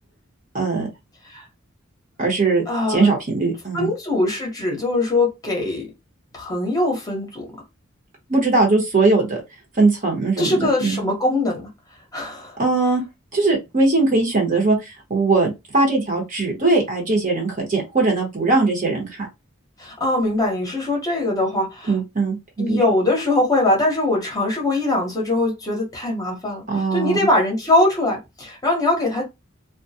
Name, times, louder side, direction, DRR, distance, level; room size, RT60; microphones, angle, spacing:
voice 1, 0.5-0.9 2.2-2.6 2.9-3.9 8.3-9.4 9.8-11.0 12.6-13.0 13.3-19.3 21.9-22.8 26.7-27.2, right 3 dB, 40° right, 0.9 m, -20 dB
voice 2, 2.7-3.1 3.7-5.9 6.3-7.5 10.4-11.7 12.1-12.6 19.8-21.9 22.6-29.2, left 2 dB, 20° left, 0.8 m, -22 dB
2.3 x 2.1 x 2.7 m
head